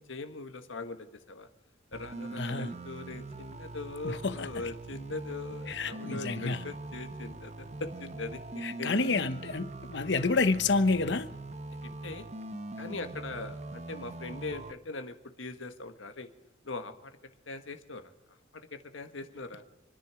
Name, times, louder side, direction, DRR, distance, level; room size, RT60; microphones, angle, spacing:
voice 1, 0.1-1.5 1.9-8.9 12.0-12.2 12.8-16.3 16.6-17.1 17.5-18.0 18.5-19.6, left 3 dB, 85° left, 1.5 m, -41 dB
sound 1, 1.9-14.7, right 2 dB, 35° right, 0.7 m, -42 dB
voice 2, 2.4-2.7 4.0-4.5 5.7-6.6 8.6-11.3, left 3 dB, 65° left, 0.9 m, -29 dB
27.0 x 10.5 x 4.9 m
head